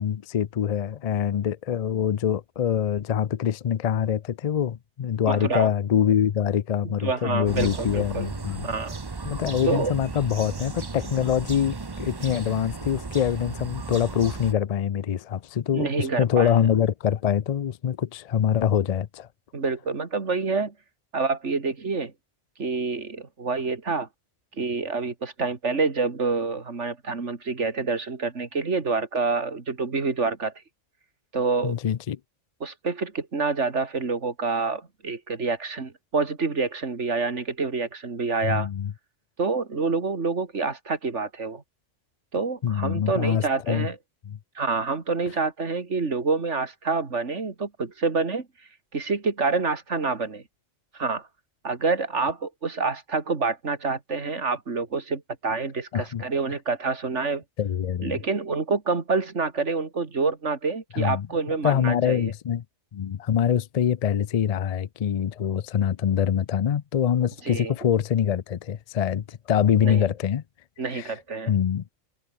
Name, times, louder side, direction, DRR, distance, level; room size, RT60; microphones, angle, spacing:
voice 1, 0.0-8.7 9.2-19.3 31.6-32.2 38.4-38.9 42.6-43.9 44.3-44.4 55.9-56.2 57.6-58.2 60.9-61.3 61.6-62.6 62.9-70.4 70.9-71.1 71.5-71.8, left 9 dB, 60° left, 0.4 m, -24 dB
voice 2, 5.3-5.7 6.8-8.3 8.6-9.0 9.7-9.9 15.7-16.5 19.5-20.7 21.1-22.1 22.6-24.1 24.6-30.5 31.3-31.8 32.6-38.7 39.4-41.6 42.3-44.0 44.6-48.5 48.9-50.4 50.9-51.3 51.6-57.4 58.0-62.3 67.4-67.7 69.8-70.0 70.8-71.5, right 4 dB, 70° right, 2.7 m, -27 dB
sound 1, 7.5-14.5, right 4 dB, 25° right, 0.7 m, -35 dB
omnidirectional pair, 1.3 m